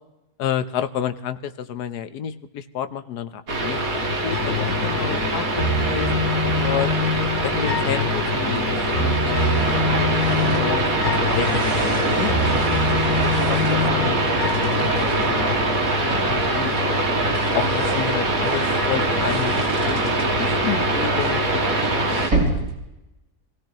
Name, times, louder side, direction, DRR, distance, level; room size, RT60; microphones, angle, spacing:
voice 1, 0.4-6.1 6.6-6.9 7.4-10.9 11.3-17.0 17.5-21.6 22.0-22.5, left 9 dB, 85° left, 10 dB, 1.4 m, -31 dB
sound 1, 3.5-22.3, right 1 dB, 60° right, 2.5 m, -23 dB
sound 2, 4.3-17.3, left 3 dB, 65° left, 3.1 m, -26 dB
sound 3, 8.6-10.7 11.1-14.0 14.4-15.4 15.9-20.5 21.0-22.8, right 2 dB, 85° right, 4.3 m, -33 dB
26.5 x 16.5 x 3.0 m, 0.96 s
omnidirectional pair, 1.7 m